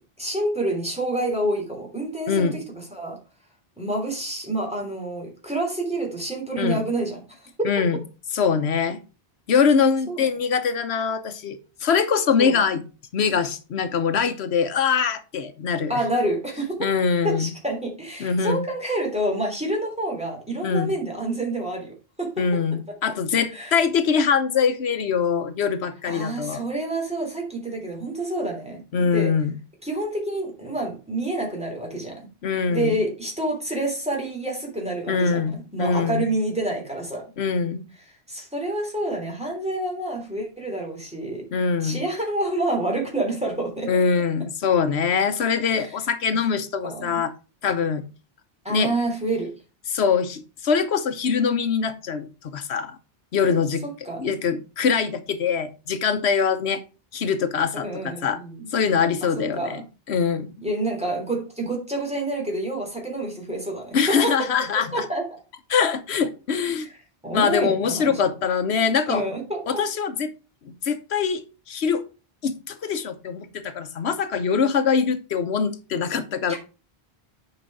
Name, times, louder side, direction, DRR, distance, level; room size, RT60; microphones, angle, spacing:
voice 1, 0.2-3.2 3.8-7.5 10.1-10.3 12.3-12.6 15.9-16.8 17.2-22.4 22.9-23.0 23.5-23.8 26.0-29.3 29.8-32.3 32.7-37.3 38.3-41.4 41.8-43.9 45.6-45.9 46.8-47.2 48.6-49.5 53.8-54.3 57.8-58.7 59.2-59.8 60.6-64.5 64.9-65.3 67.2-68.2 69.1-69.8 76.5-76.6, right 1 dB, 5° right, 3.2 m, -28 dB
voice 2, 2.3-2.6 6.6-6.8 7.6-8.0 8.3-9.0 9.5-12.8 13.1-16.0 16.8-17.5 18.2-18.7 20.6-20.9 22.4-26.6 28.9-29.5 32.4-33.0 35.1-36.3 37.4-37.8 41.5-42.0 43.9-47.3 47.6-48.1 48.7-48.9 49.9-53.0 53.3-53.8 54.2-56.8 57.1-58.4 58.7-59.8 60.1-60.5 63.9-65.0 65.7-66.9 67.3-69.2 69.7-70.3 70.6-72.0 72.4-76.5, left 6 dB, 85° left, 1.1 m, -23 dB
8.8 x 5.3 x 4.6 m
omnidirectional pair, 1.1 m